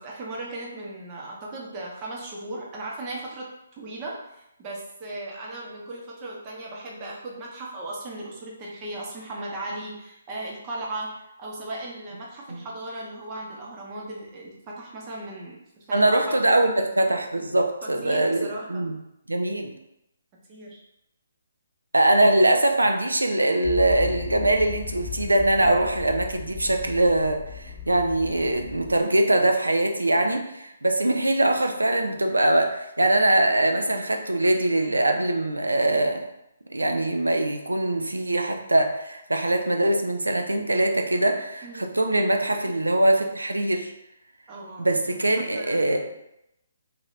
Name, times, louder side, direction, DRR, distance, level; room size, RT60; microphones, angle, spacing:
voice 1, 0.0-16.7 17.8-18.9 20.5-20.8 41.6-41.9 44.5-46.1, right 2 dB, 25° right, -3 dB, 0.7 m, -37 dB
voice 2, 15.9-19.0 19.3-19.7 21.9-36.2 36.7-43.9 44.8-46.1, right 1 dB, 90° right, 4 dB, 0.4 m, -22 dB
Motor vehicle (road), 23.6-29.0, left 8 dB, 10° left, 0.9 m, -37 dB
2.6 x 2.6 x 3.1 m, 0.84 s
figure-of-eight pair, 140°, 0 cm